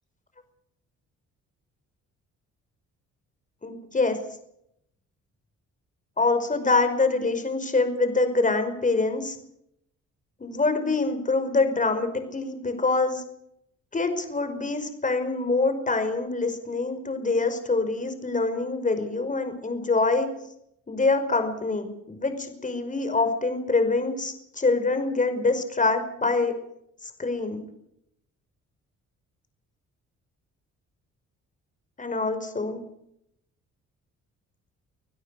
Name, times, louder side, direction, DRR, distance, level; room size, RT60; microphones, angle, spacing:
voice 1, 3.6-4.2 6.2-9.4 10.4-13.2 13.9-20.3 20.9-26.5 27.2-27.6 32.0-32.8, left 3 dB, 25° left, 8 dB, 5.4 m, -25 dB
25.5 x 16.5 x 6.6 m, 0.76 s
cardioid pair, 90°, 30 cm